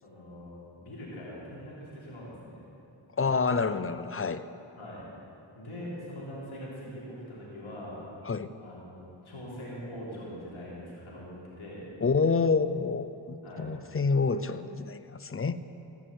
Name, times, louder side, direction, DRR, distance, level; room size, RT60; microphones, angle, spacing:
voice 1, 0.0-2.6 4.8-5.0 5.6-8.0 8.6-11.8 13.4-13.7 14.1-14.2, equal, 90° left, -6 dB, 3.7 m, -42 dB
voice 2, 3.2-4.4 8.3-8.5 12.0-15.6, left 4 dB, 30° left, 13 dB, 0.6 m, -28 dB
16.0 x 6.1 x 8.0 m, 3.0 s
cardioid pair, 45°, 47 cm